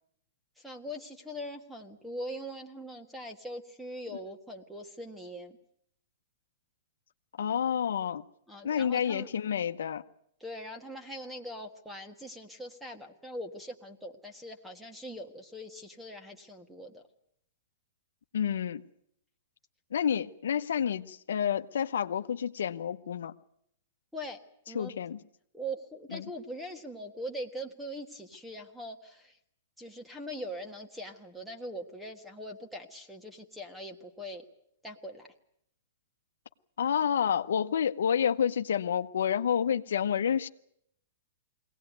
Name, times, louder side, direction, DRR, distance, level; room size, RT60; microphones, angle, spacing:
voice 1, 0.6-5.5 8.5-9.3 10.4-17.0 24.1-24.4 24.7-24.9 25.5-29.4 29.8-34.4 34.8-35.3, equal, ahead, 1.5 m, -41 dB
voice 2, 7.4-8.2 8.6-10.0 18.3-18.8 19.9-23.3 24.7-25.2 26.1-26.3 36.8-40.5, left 8 dB, 80° left, 0.8 m, -29 dB
22.0 x 17.5 x 9.4 m
hypercardioid pair, 155°, 0 cm